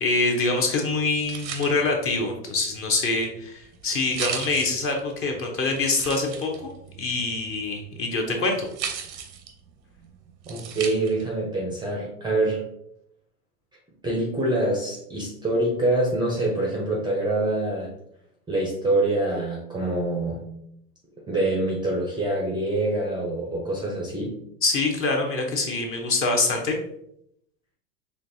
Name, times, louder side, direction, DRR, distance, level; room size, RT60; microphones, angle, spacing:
voice 1, 0.0-6.7 7.0-8.7 24.6-26.8, left 3 dB, 25° left, 2 dB, 0.7 m, -25 dB
sound 1, 0.9-11.4, right 7 dB, 85° right, 0.8 m, -38 dB
voice 2, 10.5-12.6 14.0-17.9 18.5-20.4 21.3-24.3, right 2 dB, 10° right, -2 dB, 0.5 m, -25 dB
4.4 x 3.0 x 2.7 m, 0.75 s
hypercardioid pair, 105°, 50 cm